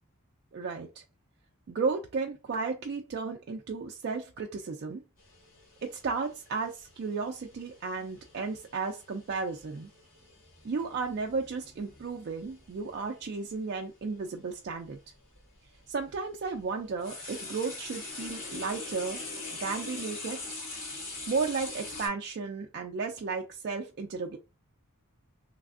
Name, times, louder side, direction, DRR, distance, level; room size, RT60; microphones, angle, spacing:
voice 1, 0.5-1.0 1.7-5.0 5.8-9.9 10.6-15.0 15.9-19.2 19.6-20.4 21.3-24.4, right 4 dB, 50° right, 0.3 m, -34 dB
sound 1, 5.2-13.3 14.5-14.6 15.4-22.1, left 3 dB, 60° left, 1.7 m, -43 dB
3.2 x 2.5 x 2.4 m
head